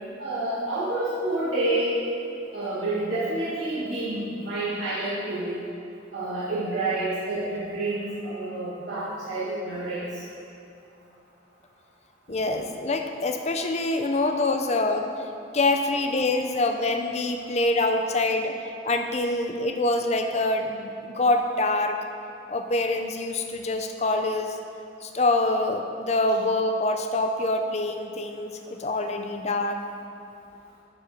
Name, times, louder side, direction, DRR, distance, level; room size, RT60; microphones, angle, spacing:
voice 1, 0.2-2.0 2.5-5.5 6.1-10.2, right 2 dB, 85° right, -11 dB, 2.0 m, -28 dB
voice 2, 12.3-15.1 15.5-18.6 18.8-22.0 22.5-24.6 25.0-29.8, left 2 dB, 35° left, 5 dB, 0.5 m, -25 dB
12.0 x 4.6 x 5.0 m, 2.6 s
head